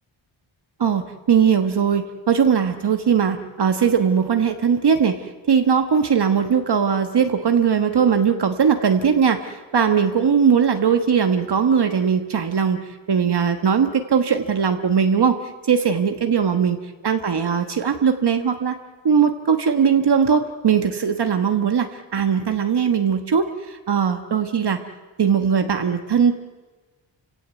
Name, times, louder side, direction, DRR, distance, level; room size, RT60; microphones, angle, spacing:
voice 1, 0.8-15.4 15.6-16.8 17.0-18.8 19.0-24.8 25.2-26.3, right 7 dB, 55° right, 6 dB, 1.4 m, -19 dB
29.5 x 17.0 x 8.2 m, 1.2 s
wide cardioid pair, 160°, 47 cm